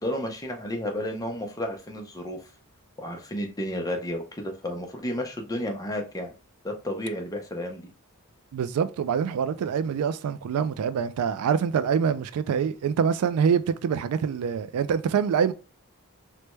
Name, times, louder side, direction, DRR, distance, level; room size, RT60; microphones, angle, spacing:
voice 1, 0.0-2.5 3.0-6.3 6.6-7.9, left 1 dB, 15° left, 0.5 m, -32 dB
voice 2, 8.5-15.5, right 7 dB, 80° right, 0.3 m, -25 dB
3.3 x 2.1 x 3.0 m
head